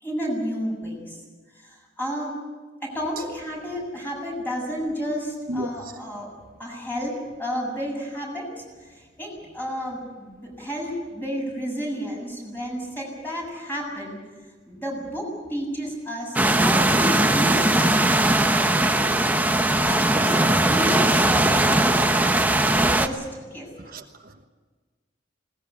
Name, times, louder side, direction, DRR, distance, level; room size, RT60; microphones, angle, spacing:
voice 1, 0.0-1.2 1.6-2.4 2.8-6.3 6.6-8.6 8.9-14.2 14.7-19.1 19.8-23.2 23.5-23.7, equal, 10° left, -1 dB, 7.6 m, -31 dB
sound 1, 16.4-23.1, right 1 dB, 10° right, 1.1 m, -19 dB
voice 2, 23.9-24.4, equal, 55° right, 4 dB, 1.2 m, -32 dB
20.5 x 19.5 x 8.4 m, 1.4 s
head